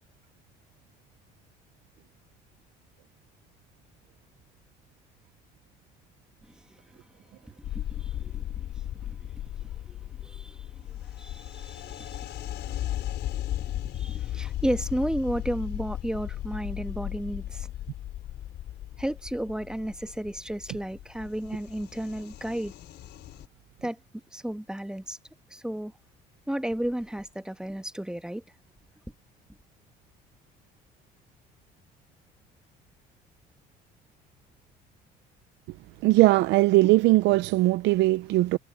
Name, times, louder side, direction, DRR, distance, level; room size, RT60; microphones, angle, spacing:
voice 1, 7.4-9.3 9.6-13.4 13.9-17.7 19.0-22.7 23.8-24.0 24.3-25.2 25.5-25.9 26.5-28.4, right 1 dB, 5° right, 1.5 m, -33 dB
sound 1, 7.6-23.5, left 13 dB, 65° left, 4.8 m, -36 dB
voice 2, 36.0-38.6, right 19 dB, 75° right, 0.7 m, -20 dB
supercardioid pair, 85°, 19 cm